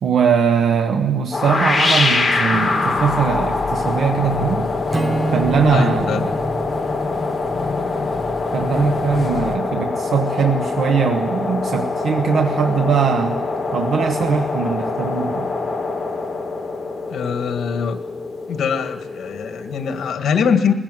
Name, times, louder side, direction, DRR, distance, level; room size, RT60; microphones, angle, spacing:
voice 1, 0.0-4.7 5.3-6.2 8.5-13.4 13.7-15.5, right 6 dB, 80° right, 4 dB, 1.1 m, -20 dB
sound 1, 1.3-20.1, left 3 dB, 25° left, 3.5 m, -24 dB
sound 2, 2.5-9.6, left 3 dB, 40° left, 1.5 m, -30 dB
Acoustic guitar / Strum, 4.9-8.2, right 3 dB, 25° right, 0.7 m, -28 dB
voice 2, 5.7-6.3 17.1-18.0 18.5-20.7, left 6 dB, 80° left, 7 dB, 1.8 m, -22 dB
20.5 x 16.0 x 9.4 m, 1.1 s
wide cardioid pair, 155°, 0 cm